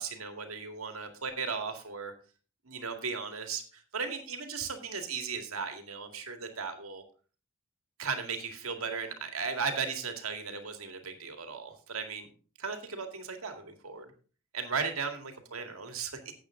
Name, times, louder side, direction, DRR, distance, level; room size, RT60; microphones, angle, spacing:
voice 1, 0.0-2.1 2.6-7.0 8.0-12.3 12.6-14.1 14.5-16.3, right 5 dB, 75° right, 6 dB, 2.2 m, -36 dB
12.5 x 8.5 x 3.8 m, 0.38 s
head